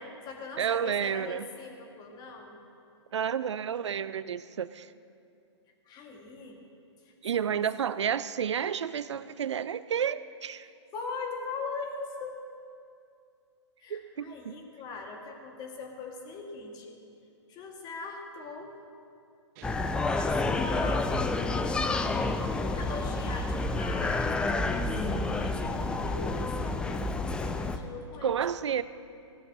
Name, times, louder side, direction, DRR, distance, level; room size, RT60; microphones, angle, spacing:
voice 1, 0.0-2.5 5.8-6.6 7.0-7.6 10.9-12.4 13.8-16.9 17.5-18.7 19.7-21.1 22.6-28.4 28.6-28.7, left 4 dB, 25° left, 2 dB, 1.6 m, -41 dB
voice 2, 0.6-1.5 3.1-4.9 7.2-10.7 13.9-14.6 28.2-28.8, right 8 dB, 70° right, 16 dB, 0.4 m, -30 dB
sound 1, 19.6-27.8, left 3 dB, 5° left, 0.3 m, -29 dB
Guitar, 19.6-20.7, right 7 dB, 35° right, 0.6 m, -46 dB
17.0 x 12.5 x 2.8 m, 2.4 s
figure-of-eight pair, 120°, 15 cm